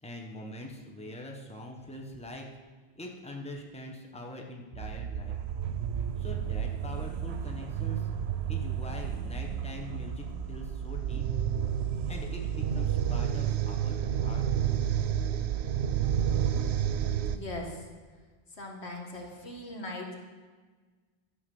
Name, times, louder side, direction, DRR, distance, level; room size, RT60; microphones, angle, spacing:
voice 1, 0.0-2.4 2.9-5.3 6.2-8.1 8.5-11.2 12.1-14.4, left 1 dB, 5° left, 1 dB, 1.1 m, -43 dB
sound 1, 4.7-17.4, right 9 dB, 80° right, 0.9 m, -31 dB
voice 2, 17.3-17.9 18.5-20.1, left 1 dB, 85° left, 1 dB, 2.0 m, -40 dB
12.0 x 7.0 x 5.4 m, 1.4 s
omnidirectional pair, 1.1 m